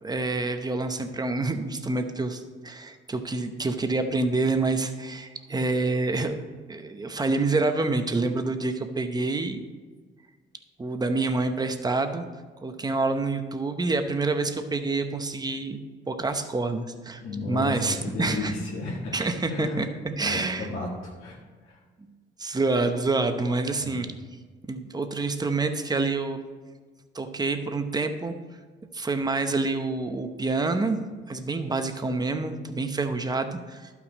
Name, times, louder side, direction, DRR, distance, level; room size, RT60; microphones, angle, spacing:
voice 1, 0.0-6.4 6.7-9.6 10.8-12.3 12.6-18.5 19.1-20.7 22.4-24.1 24.7-26.4 27.1-28.3 28.9-31.0 31.3-33.9, right 3 dB, 20° right, 7 dB, 0.9 m, -27 dB
voice 2, 17.2-19.2 19.5-19.8 20.2-21.8 23.8-24.1, left 2 dB, 85° left, -5 dB, 1.9 m, -33 dB
11.5 x 6.0 x 4.1 m, 1.4 s
cardioid pair, 90°, 20 cm